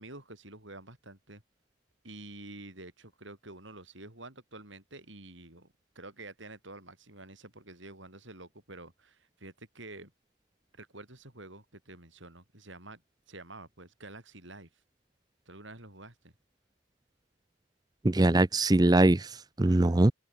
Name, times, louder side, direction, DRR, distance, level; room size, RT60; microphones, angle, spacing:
voice 1, 0.0-1.4 2.0-10.1 10.7-13.0 13.3-14.7 15.5-16.3 19.6-20.0, right 2 dB, 65° right, 7.8 m, -48 dB
voice 2, 18.0-20.1, right 2 dB, 20° right, 0.5 m, -22 dB
head